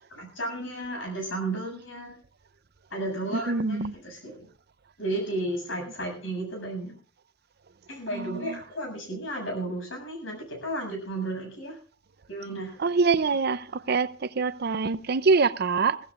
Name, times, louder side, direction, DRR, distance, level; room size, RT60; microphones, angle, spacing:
voice 1, 0.1-2.2 2.9-4.5 5.0-7.0 7.9-11.8 12.3-12.8, right 1 dB, 85° left, 7.6 m, -33 dB
voice 2, 3.3-3.9 8.1-8.6 12.8-16.0, right 4 dB, 55° right, 0.6 m, -25 dB
23.0 x 16.0 x 2.5 m
head